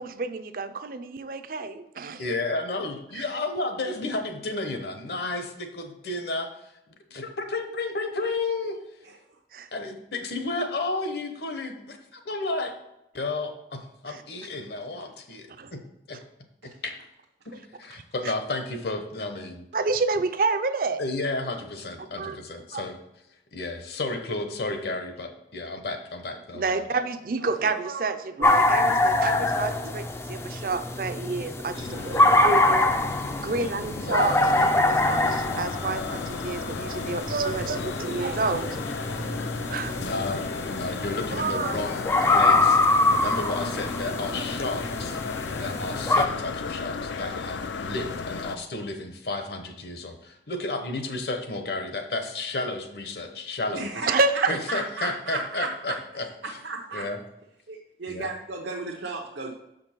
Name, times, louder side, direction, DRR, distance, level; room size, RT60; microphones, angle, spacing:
voice 1, 0.0-2.2 3.1-3.3 9.5-9.7 14.1-14.2 15.6-15.7 19.7-21.0 22.2-22.4 22.7-22.8 26.5-32.9 33.4-38.9 39.7-40.0 41.3-41.8 54.1-54.6, right 3 dB, 50° right, 11 dB, 0.5 m, -29 dB
voice 2, 2.2-6.5 7.1-8.8 9.7-12.7 13.1-15.8 16.1-16.2 16.6-16.9 17.5-19.6 21.0-23.0 23.5-27.0 33.4-34.7 40.0-40.4 40.7-45.2 45.6-53.9 54.5-56.3 56.9-57.2 58.1-58.3, left 2 dB, 65° left, 6 dB, 0.9 m, -32 dB
voice 3, 27.4-27.8 28.4-28.5 29.4-29.5 29.8-29.9 53.7-57.1 57.7-59.5, right 3 dB, 85° right, -1 dB, 0.8 m, -34 dB
sound 1, 28.4-46.3, left 2 dB, 15° left, 0.3 m, -25 dB
sound 2, 31.7-48.6, left 5 dB, 85° left, 0.4 m, -35 dB
6.6 x 5.2 x 4.4 m, 0.86 s
head